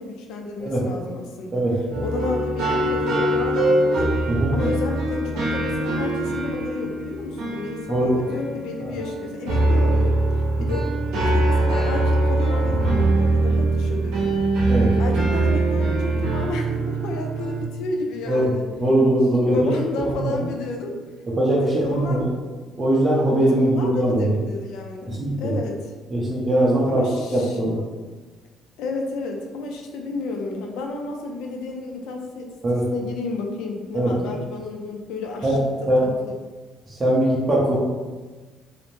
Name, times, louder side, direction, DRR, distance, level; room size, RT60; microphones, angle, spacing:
voice 1, 0.0-1.6 2.0-4.0 4.5-10.9 11.2-14.4 15.0-18.6 19.4-20.9 21.6-22.2 23.6-25.9 26.9-27.6 28.8-32.5 32.9-36.3, left 3 dB, 90° left, 2 dB, 0.4 m, -31 dB
voice 2, 1.5-2.0 4.3-4.5 7.9-8.2 8.8-9.0 10.6-10.7 14.7-14.9 18.3-18.5 18.8-19.7 20.0-20.3 21.4-22.3 22.7-24.3 25.1-25.5 26.1-27.0 27.3-27.8 32.6-32.8 33.9-34.1 35.4-35.6 35.9-36.0 36.9-37.8, right 1 dB, 20° right, -6 dB, 0.5 m, -21 dB
sound 1, 1.9-17.6, right 2 dB, 90° right, 0.6 m, -22 dB
2.6 x 2.0 x 3.1 m, 1.3 s
cardioid pair, 135°, 0 cm